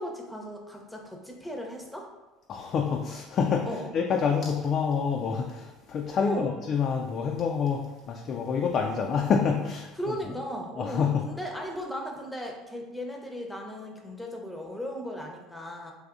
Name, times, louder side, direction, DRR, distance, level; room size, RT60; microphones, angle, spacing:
voice 1, 0.0-2.1 3.6-3.9 6.2-6.5 10.0-15.9, equal, 5° left, 1 dB, 0.7 m, -36 dB
voice 2, 2.5-9.9 10.8-11.2, left 6 dB, 50° left, 2 dB, 0.3 m, -27 dB
3.4 x 2.6 x 2.5 m, 1.1 s
hypercardioid pair, 80°, 0 cm